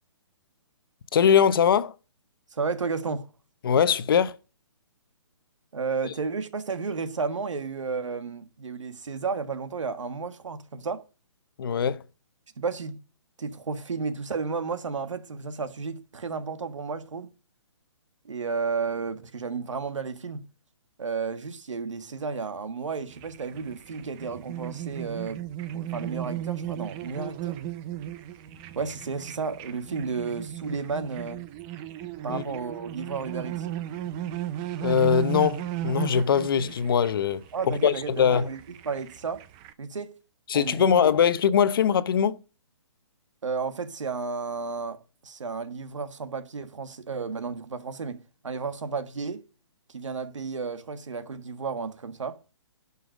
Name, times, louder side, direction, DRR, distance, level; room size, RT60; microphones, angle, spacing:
voice 1, 1.1-1.9 3.6-4.3 6.0-6.1 11.6-12.0 32.3-32.4 34.8-38.5 40.5-42.4, left 7 dB, 50° left, 0.9 m, -22 dB
voice 2, 2.5-3.3 5.7-11.0 12.6-13.0 13.4-17.3 18.2-20.4 21.0-25.4 25.7-27.6 28.7-31.4 32.2-33.7 37.5-39.4 39.8-40.2 40.5-41.1 43.4-49.4 49.9-52.4, right 5 dB, 90° right, 1.6 m, -32 dB
sound 1, 23.1-39.7, right 12 dB, 15° right, 0.5 m, -36 dB
11.0 x 5.6 x 6.3 m
hypercardioid pair, 165°, 15 cm